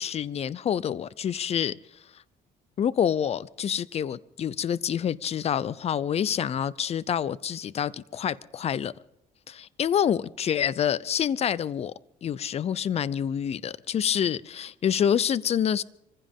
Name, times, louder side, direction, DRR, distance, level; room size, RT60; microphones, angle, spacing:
voice 1, 0.0-1.7 2.8-8.9 9.5-11.9 12.2-15.8, left 9 dB, 40° left, 0.5 m, -27 dB
24.5 x 15.5 x 3.6 m
cardioid pair, 110°, 17 cm